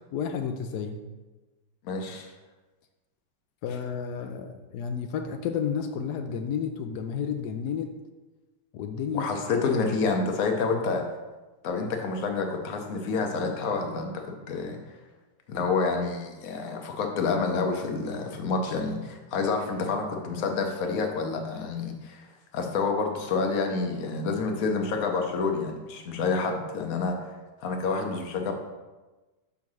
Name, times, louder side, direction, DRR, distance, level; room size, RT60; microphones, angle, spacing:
voice 1, 0.1-1.0 3.6-7.9 8.7-9.3, left 7 dB, 85° left, 6 dB, 0.8 m, -31 dB
voice 2, 1.8-2.3 9.1-11.0 11.6-14.8 15.5-22.3 22.5-27.2 27.6-28.5, left 4 dB, 60° left, 3 dB, 1.0 m, -28 dB
5.8 x 3.8 x 6.1 m, 1.2 s
omnidirectional pair, 2.3 m